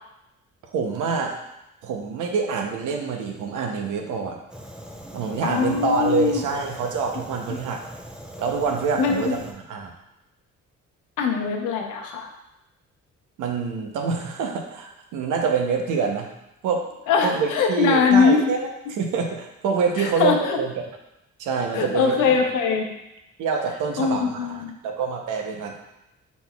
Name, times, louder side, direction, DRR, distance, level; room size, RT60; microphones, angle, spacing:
voice 1, 0.7-1.4 1.8-4.4 5.1-7.8 8.4-9.4 9.7-9.9 13.4-16.3 16.6-16.9 17.2-20.7 21.4-22.1 23.4-25.7, right 5 dB, 85° right, 3 dB, 0.8 m, -26 dB
Fire, 4.5-9.5, equal, 5° right, 0.4 m, -41 dB
voice 2, 5.4-6.4 9.0-9.4 11.2-12.3 17.1-18.5 20.0-20.6 21.7-22.9 24.0-24.7, left 5 dB, 85° left, 2 dB, 0.8 m, -21 dB
5.5 x 4.1 x 2.3 m, 0.89 s
cardioid pair, 90°, 30 cm